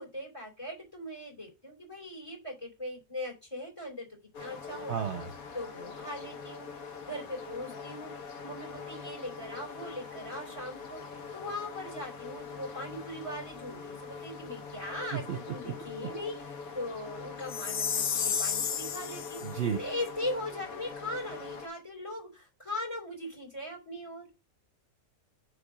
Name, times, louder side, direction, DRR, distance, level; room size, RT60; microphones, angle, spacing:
voice 1, 0.0-5.0 5.5-8.1 8.4-11.0 11.3-24.3, left 1 dB, 20° left, 1 dB, 3.1 m, -40 dB
sound 1, 4.3-21.7, left 5 dB, 80° left, 1.5 m, -43 dB
voice 2, 4.9-5.3 15.1-15.4 15.6-15.7 16.0-16.1 19.4-19.8, right 8 dB, 60° right, 7 dB, 1.0 m, -32 dB
Chime, 17.5-19.5, left 7 dB, 55° left, 0.7 m, -31 dB
6.8 x 3.7 x 6.0 m, 0.28 s
omnidirectional pair, 1.5 m